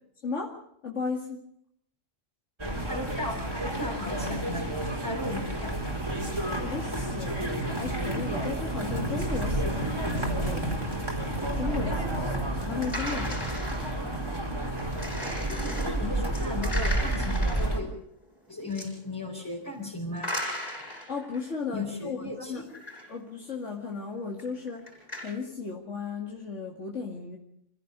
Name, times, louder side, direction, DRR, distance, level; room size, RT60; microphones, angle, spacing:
voice 1, 0.8-1.4 6.5-10.9 11.6-13.7 21.1-22.6 23.1-24.8 25.2-27.4, left 4 dB, 70° left, -1 dB, 2.6 m, -35 dB
sound 1, 2.6-17.8, right 1 dB, 20° right, 4.3 m, -30 dB
voice 2, 2.9-4.7 5.0-5.7 15.5-17.9 18.5-20.3 21.7-22.7, left 2 dB, 15° left, -3 dB, 4.4 m, -36 dB
sound 2, 12.8-14.0 14.8-15.9 16.3-17.7 18.6-18.9 20.2-21.5 22.7-23.0 23.5-23.6 24.4-25.3, left 1 dB, 30° left, 6.5 m, -36 dB
26.5 x 16.0 x 6.8 m, 0.71 s
omnidirectional pair, 1.3 m